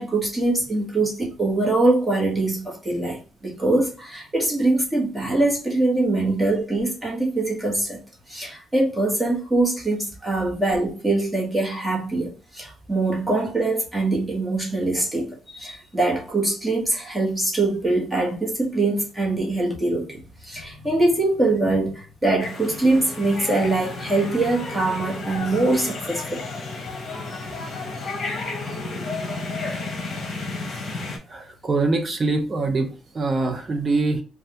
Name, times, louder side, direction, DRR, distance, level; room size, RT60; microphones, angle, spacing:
voice 1, 0.0-8.0 8.3-26.4, right 2 dB, 10° right, 1.2 m, -23 dB
sound 1, 22.4-31.2, left 3 dB, 50° left, 1.0 m, -32 dB
voice 2, 31.3-34.2, right 3 dB, 35° right, 0.8 m, -24 dB
3.2 x 2.3 x 2.9 m
cardioid pair, 90°, 0 cm